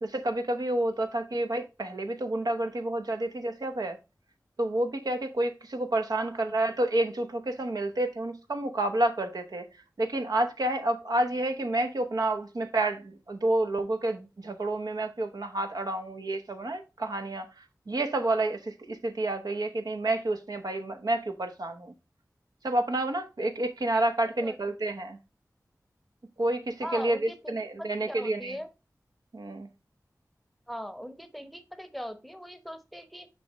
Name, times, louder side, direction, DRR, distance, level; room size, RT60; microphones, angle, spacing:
voice 1, 0.0-4.0 4.6-9.6 10.0-17.5 17.9-21.9 22.6-25.2 26.4-27.2 27.5-28.6 29.3-29.7, right 1 dB, 70° right, 0.9 m, -29 dB
voice 2, 24.4-24.7 26.8-28.7 30.7-33.3, equal, ahead, 0.9 m, -40 dB
6.8 x 4.9 x 3.1 m
wide cardioid pair, 60°, 7 cm